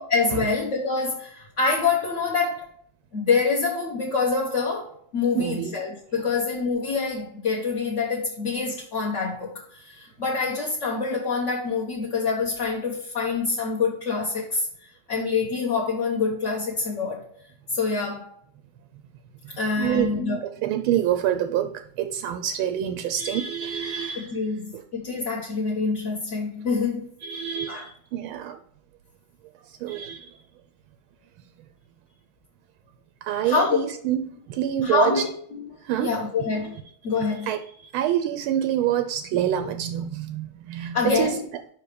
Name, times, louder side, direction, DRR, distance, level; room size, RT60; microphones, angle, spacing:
voice 1, 0.0-2.7 3.1-14.7 15.1-17.3 17.7-18.3 19.6-20.4 24.3-27.1 27.7-27.8 33.4-33.8 34.8-35.6 36.0-36.8 37.0-37.5 40.9-41.4, left 4 dB, 40° left, -4 dB, 1.3 m, -26 dB
voice 2, 5.3-5.8 19.7-20.1 20.4-24.3 24.7-24.8 27.2-28.6 29.7-30.4 33.2-35.2 35.8-36.2 37.4-41.4, right 10 dB, 80° right, 8 dB, 1.4 m, -27 dB
5.5 x 4.6 x 5.0 m, 0.64 s
omnidirectional pair, 2.3 m